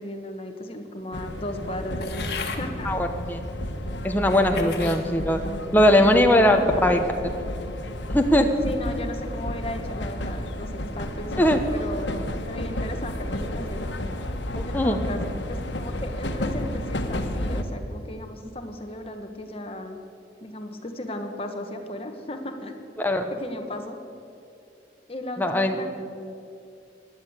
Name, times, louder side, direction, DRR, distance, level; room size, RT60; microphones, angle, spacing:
voice 1, 0.0-2.9 4.5-4.9 5.8-6.9 8.6-13.8 14.6-20.0 20.4-22.8 23.3-24.0 25.1-26.0, left 1 dB, 30° left, 5 dB, 1.3 m, -35 dB
sound 1, 1.1-17.6, left 1 dB, 80° left, 1.3 m, -32 dB
sound 2, 2.0-2.6 3.4-3.5 4.2-5.0 5.6-6.0, left 5 dB, 60° left, 1.7 m, -36 dB
voice 2, 2.8-3.4 4.0-5.4 5.7-6.6 6.8-7.0 8.1-8.5 11.4-11.6 14.6-15.0 23.0-23.2 25.4-26.0, left 1 dB, 10° left, 4 dB, 0.9 m, -20 dB
16.0 x 11.0 x 8.1 m, 2.6 s
head